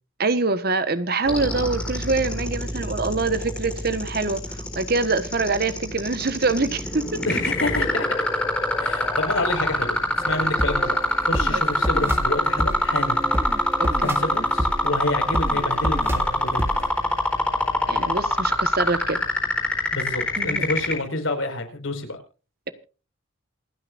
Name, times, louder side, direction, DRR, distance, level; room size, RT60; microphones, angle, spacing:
voice 1, 0.2-7.2 11.5-11.6 13.8-14.1 17.9-19.2 20.4-20.6, right 3 dB, 45° right, 1.3 m, -25 dB
sound 1, 1.3-20.9, left 1 dB, 5° left, 3.9 m, -24 dB
voice 2, 7.3-8.2 8.8-11.0 11.2-13.2 13.9-16.6 19.9-22.2, left 2 dB, 70° left, 5.1 m, -28 dB
sound 2, 10.2-16.9, equal, 10° right, 2.0 m, -29 dB
28.0 x 9.9 x 2.5 m
head